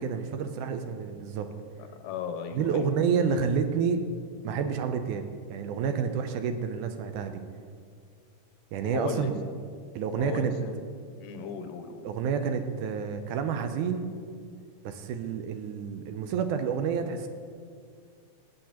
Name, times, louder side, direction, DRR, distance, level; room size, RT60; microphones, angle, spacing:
voice 1, 0.0-1.5 2.5-4.0 4.4-7.4 8.7-9.3 10.0-10.5 12.0-14.1 14.8-17.3, right 6 dB, 80° right, 7 dB, 2.0 m, -29 dB
voice 2, 2.0-2.9 8.8-9.3 10.1-10.7 11.2-12.0, left 6 dB, 85° left, 7 dB, 2.3 m, -36 dB
15.5 x 8.8 x 2.9 m, 2.1 s
omnidirectional pair, 3.7 m